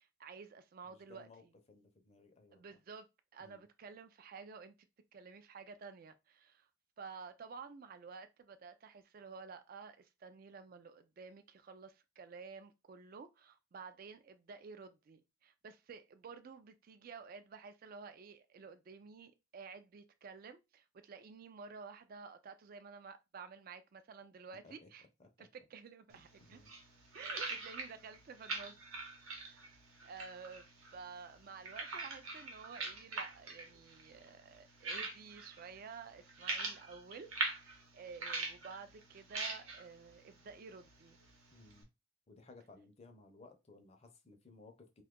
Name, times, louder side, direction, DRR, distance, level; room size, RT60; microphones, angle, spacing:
voice 1, 0.0-1.5 2.5-3.1 3.3-4.8 5.1-6.7 7.0-25.1 25.4-26.6 27.1-28.8 29.4-29.6 30.0-41.2, right 5 dB, 45° right, 0.3 m, -52 dB
voice 2, 0.8-1.4 1.7-2.8 3.4-3.6 24.6-24.9 25.2-25.5 26.4-26.7 41.5-41.9 42.3-45.0, left 3 dB, 30° left, 0.5 m, -59 dB
sound 1, 26.1-41.8, right 3 dB, 80° right, 0.9 m, -44 dB
2.6 x 2.3 x 3.6 m
head